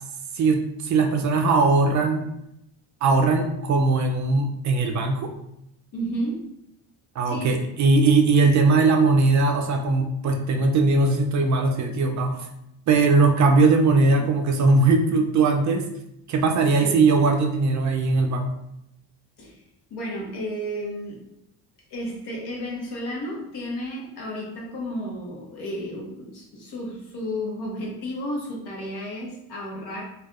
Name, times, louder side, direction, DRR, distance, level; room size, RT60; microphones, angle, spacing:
voice 1, 0.3-2.3 3.0-5.3 7.2-12.4 12.9-15.8 16.3-18.5, right 3 dB, 45° right, 3 dB, 0.4 m, -20 dB
voice 2, 5.9-6.4 7.2-7.5 14.1-14.2 16.8-17.0 19.4-19.6 19.9-21.2 21.9-30.0, equal, 60° left, -2 dB, 1.2 m, -32 dB
3.3 x 2.4 x 2.4 m, 0.80 s
cardioid pair, 105°, 43 cm